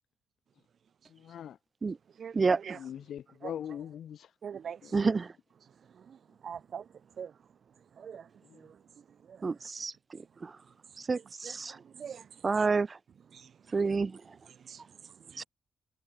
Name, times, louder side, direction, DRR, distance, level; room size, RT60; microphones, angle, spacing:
voice 1, 1.1-1.6 2.7-4.3 4.8-5.0 8.5-8.6, left 9 dB, 70° left, 1.0 m, -41 dB
voice 2, 2.2-2.8 3.4-3.5 4.4-5.0 5.9-6.9 7.2-7.3 8.0-8.8 9.3-9.4 11.1-12.4 13.3-13.8 14.5-15.4, right 7 dB, 60° right, 4.0 m, -45 dB
voice 3, 4.9-5.3 9.4-9.9 10.4-10.5 11.1-11.8 12.4-13.0 13.7-14.2 15.4-15.5, right 4 dB, 35° right, 0.7 m, -28 dB
cardioid pair, 80°, 0 cm